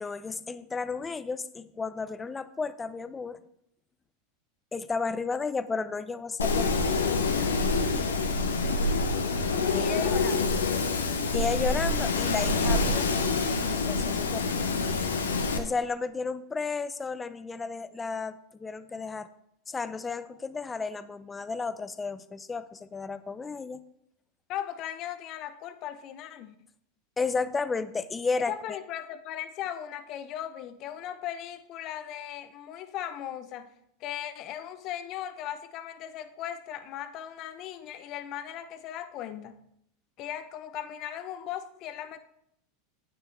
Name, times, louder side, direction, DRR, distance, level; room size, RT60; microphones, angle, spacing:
voice 1, 0.0-3.4 4.7-6.9 9.6-10.6 11.3-13.1 13.7-14.5 15.6-19.3 19.7-23.8 27.2-28.8, left 4 dB, 20° left, 13 dB, 0.6 m, -33 dB
Wind, 6.4-15.6, left 3 dB, 85° left, 1.0 m, -26 dB
voice 2, 9.7-10.4 24.5-26.5 28.5-33.7 34.0-39.6 40.2-42.2, left 11 dB, 45° left, 10 dB, 0.9 m, -38 dB
9.9 x 9.0 x 3.4 m, 0.75 s
hypercardioid pair, 90°, 0 cm